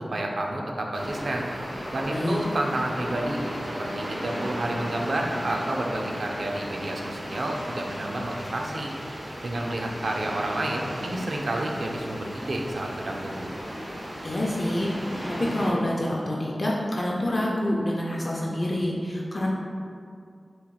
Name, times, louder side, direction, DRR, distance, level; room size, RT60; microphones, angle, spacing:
voice 1, 0.0-1.5 1.9-3.4 3.8-9.0 9.4-13.5, right 1 dB, 70° right, 0 dB, 0.5 m, -30 dB
sound 1, 0.9-15.7, equal, 85° right, 1.3 m, -35 dB
voice 2, 2.1-2.4 14.2-14.9 15.4-19.5, left 1 dB, 40° left, -4 dB, 0.6 m, -27 dB
6.9 x 3.1 x 2.4 m, 2.3 s
wide cardioid pair, 90°, 0 cm